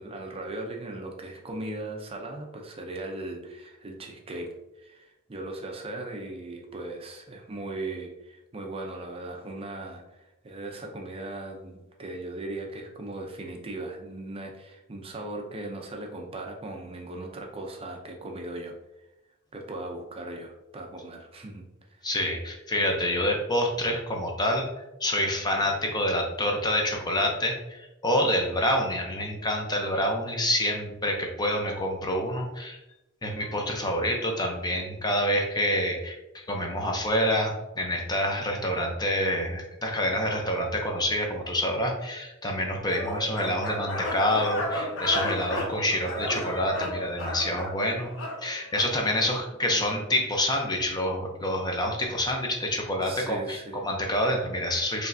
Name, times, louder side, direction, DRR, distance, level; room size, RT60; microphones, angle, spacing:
voice 1, 0.0-18.7 19.5-21.6 21.9-22.1 49.7-50.0 53.0-53.8, right 2 dB, 25° right, 2 dB, 0.5 m, -38 dB
voice 2, 22.0-24.7 25.0-32.8 33.2-36.2 36.5-48.1 48.4-55.1, left 1 dB, 20° left, 2 dB, 0.6 m, -27 dB
sound 1, 42.9-48.9, left 1 dB, 60° left, 0.8 m, -33 dB
4.8 x 3.2 x 2.6 m, 0.95 s
head